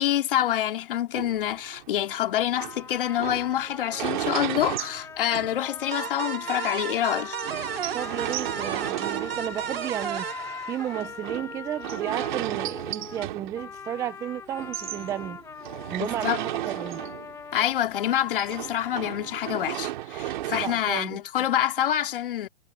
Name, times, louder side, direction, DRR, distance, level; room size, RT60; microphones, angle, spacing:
voice 1, 0.0-7.4 16.0-16.4 17.5-22.5, left 11 dB, 65° left, 2.8 m, -26 dB
sound 1, 1.1-6.1 6.5-6.6 6.8-6.9 7.4-14.2 14.5-17.5 17.8-21.0, right 14 dB, 55° right, 2.5 m, -34 dB
sound 2, 2.6-19.7, left 6 dB, 10° left, 1.8 m, -41 dB
sound 3, 5.9-11.3, right 9 dB, 90° right, 2.6 m, -34 dB
voice 2, 7.9-10.3 10.7-15.4 15.9-17.0 20.5-21.2, right 11 dB, 10° right, 0.6 m, -33 dB
hypercardioid pair, 155°, 29 cm